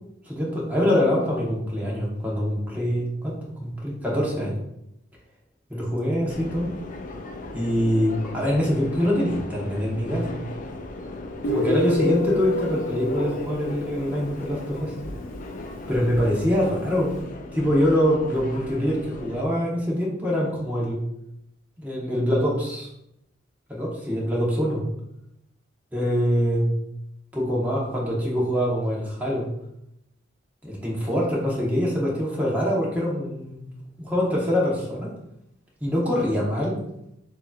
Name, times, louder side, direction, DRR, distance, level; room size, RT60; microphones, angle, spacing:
voice 1, 0.2-4.6 5.7-6.7 7.5-10.4 11.4-14.9 15.9-17.1 17.5-21.0 21.8-22.9 23.7-24.8 25.9-26.7 27.3-29.5 30.6-33.7 34.0-35.1 35.8-36.8, equal, 10° right, -4 dB, 1.1 m, -24 dB
Subway metro underground, 6.3-19.4, left 2 dB, 45° left, 0.4 m, -36 dB
Guitar, 11.4-15.0, left 2 dB, 90° left, 0.8 m, -28 dB
6.6 x 2.8 x 2.4 m, 0.81 s
head